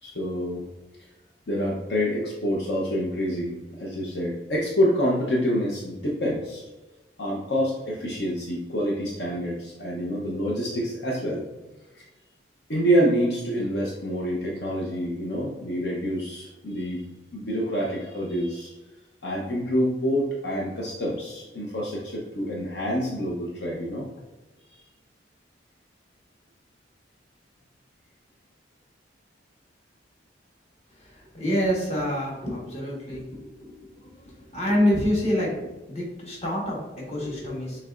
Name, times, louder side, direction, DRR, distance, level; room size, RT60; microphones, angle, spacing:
voice 1, 0.0-0.6 1.5-6.6 7.2-11.5 11.9-12.0 12.7-17.0 17.3-18.7 19.2-24.0 24.7-24.8, equal, 65° left, -3 dB, 0.8 m, -27 dB
voice 2, 30.9-35.6 35.9-37.9, equal, 35° left, -4 dB, 1.3 m, -27 dB
6.5 x 3.3 x 2.4 m, 1.1 s
head